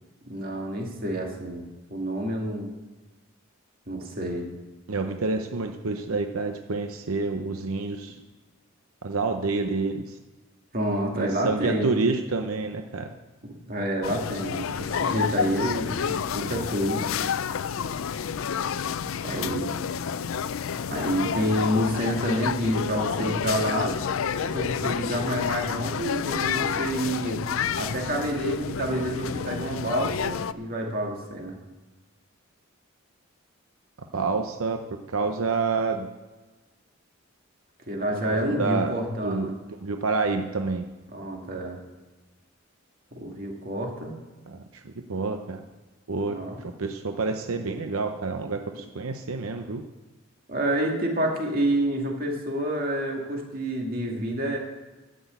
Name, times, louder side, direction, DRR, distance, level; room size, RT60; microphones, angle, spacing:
voice 1, 0.2-1.6 1.9-2.7 3.9-4.5 10.7-11.9 13.4-17.1 19.2-19.7 20.9-24.0 24.4-27.4 27.8-31.6 37.9-39.5 41.1-41.8 43.1-44.1 46.3-46.6 50.5-54.6, right 1 dB, 45° right, 0 dB, 2.3 m, -28 dB
voice 2, 4.9-8.2 9.0-10.2 11.2-13.1 34.1-34.8 35.1-36.1 38.2-38.9 39.2-39.5 39.8-40.8 44.5-45.6 46.1-49.8, right 3 dB, 85° right, 5 dB, 0.8 m, -28 dB
sound 1, 14.0-30.5, left 7 dB, 70° left, 0.4 m, -29 dB
12.0 x 6.3 x 8.2 m, 1.2 s
head